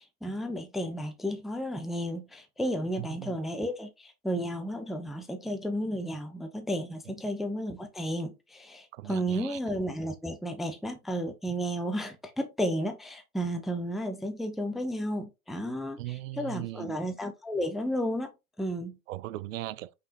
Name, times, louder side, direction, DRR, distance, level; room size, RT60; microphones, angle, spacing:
voice 1, 0.0-18.3 18.6-19.0, equal, ahead, 0.5 m, -33 dB
voice 2, 3.0-3.4 8.9-9.6 16.0-17.0 19.1-19.9, right 16 dB, 60° right, 0.5 m, -38 dB
5.4 x 3.3 x 2.8 m
figure-of-eight pair, 90°, 45 cm